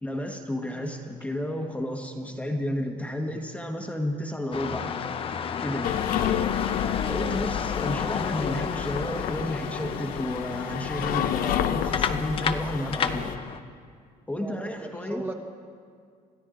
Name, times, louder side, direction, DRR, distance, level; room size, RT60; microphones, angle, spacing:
voice 1, 0.0-4.9 5.6-6.0 7.1-13.3 14.3-15.3, left 1 dB, 10° left, 2 dB, 1.2 m, -31 dB
sound 1, 4.5-13.6, left 7 dB, 35° left, 0.7 m, -32 dB
sound 2, 5.8-13.4, left 10 dB, 70° left, 0.7 m, -30 dB
voice 2, 14.4-15.3, right 2 dB, 15° right, 2 dB, 1.2 m, -38 dB
27.5 x 13.0 x 3.8 m, 2.2 s
cardioid pair, 130°, 15 cm